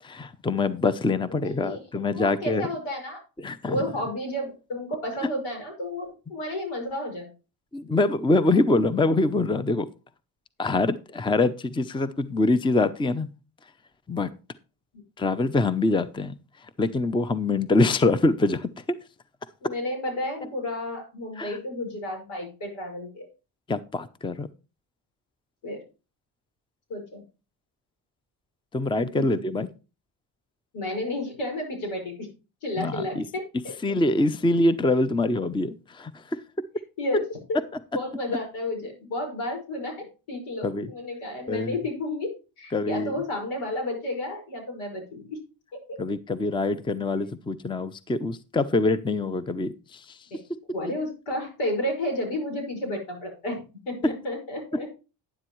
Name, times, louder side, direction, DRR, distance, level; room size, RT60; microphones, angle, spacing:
voice 1, 0.0-2.7 3.4-3.8 7.7-9.9 10.6-13.3 14.1-14.3 15.2-16.3 16.8-18.7 21.4-21.6 23.7-24.5 28.7-29.7 32.8-33.2 33.8-36.1 40.6-40.9 41.5-41.7 42.7-43.1 46.0-50.0 54.0-54.1, left 2 dB, 10° left, 14 dB, 0.6 m, -24 dB
voice 2, 1.3-1.8 2.1-3.2 3.7-7.3 17.7-17.8 19.6-23.3 25.6-25.8 26.9-27.2 28.9-29.6 30.7-32.3 32.6-33.7 37.0-37.2 37.5-37.6 37.9-42.3 42.6-45.4 45.7-46.0 50.3-50.4 50.7-54.9, left 1 dB, 85° left, 2 dB, 5.6 m, -32 dB
11.0 x 10.0 x 3.1 m, 0.31 s
cardioid pair, 80°, 47 cm